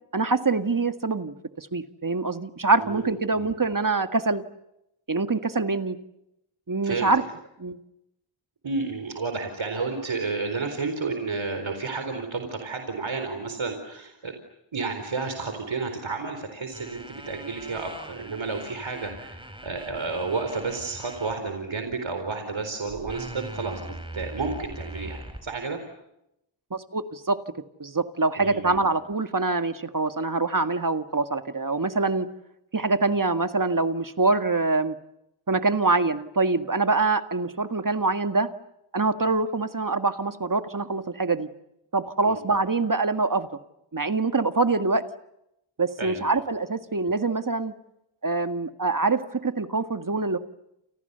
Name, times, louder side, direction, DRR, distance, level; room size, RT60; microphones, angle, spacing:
voice 1, 0.1-4.4 5.1-6.0 6.7-7.2 7.6-7.8 26.7-27.4 27.8-32.3 32.7-35.0 35.5-38.5 38.9-41.5 41.9-43.5 43.9-45.0 45.8-47.7 48.2-50.4, right 3 dB, 40° right, 9 dB, 1.9 m, -25 dB
voice 2, 2.8-3.5 6.8-7.1 8.6-14.3 14.7-25.8 28.4-28.8 42.2-42.4 46.0-46.3, right 4 dB, 65° right, 6 dB, 4.3 m, -31 dB
sound 1, 16.7-21.3 21.9-22.1 22.9-25.4, right 1 dB, 10° right, 6.0 m, -41 dB
29.5 x 28.5 x 6.9 m, 0.84 s
cardioid pair, 45°, 50 cm